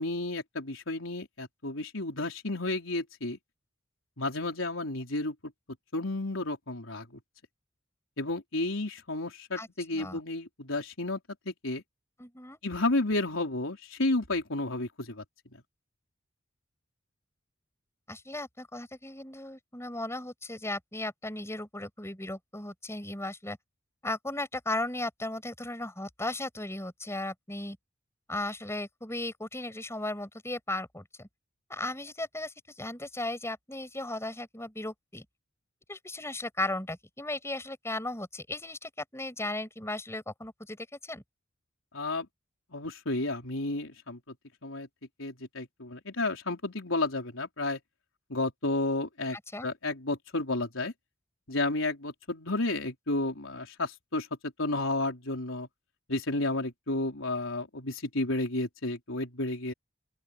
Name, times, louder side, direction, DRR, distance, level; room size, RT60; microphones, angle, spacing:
voice 1, 0.0-3.4 4.2-5.3 5.9-7.0 8.2-11.2 11.5-11.8 12.6-15.2 41.9-42.3 42.7-44.2 44.6-44.9 45.2-47.8 48.3-49.4 49.6-50.9 51.5-54.3 54.6-55.7 56.1-59.7, left 2 dB, 80° left, 4.0 m, -31 dB
voice 2, 12.2-12.6 18.1-23.6 24.0-27.8 28.3-31.3 31.7-35.3 35.9-41.2 49.3-49.7, left 2 dB, 15° left, 7.4 m, -36 dB
open air
head